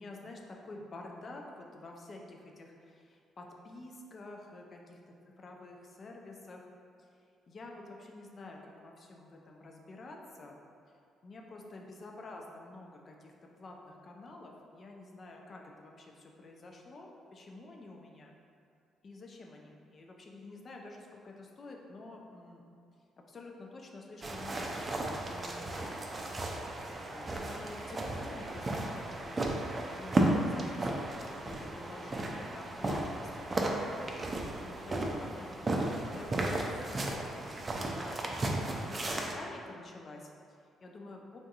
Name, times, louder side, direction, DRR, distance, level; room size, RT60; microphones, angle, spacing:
voice 1, 0.0-5.0 5.4-6.7 7.5-10.6 11.2-18.4 19.0-22.6 23.2-26.2 26.6-33.8 34.3-36.6 36.9-41.4, left 2 dB, 45° left, 1 dB, 0.4 m, -49 dB
sound 1, 24.2-39.3, right 2 dB, 35° right, 0.4 m, -34 dB
3.5 x 2.6 x 2.4 m, 2.4 s
hypercardioid pair, 45°, 0 cm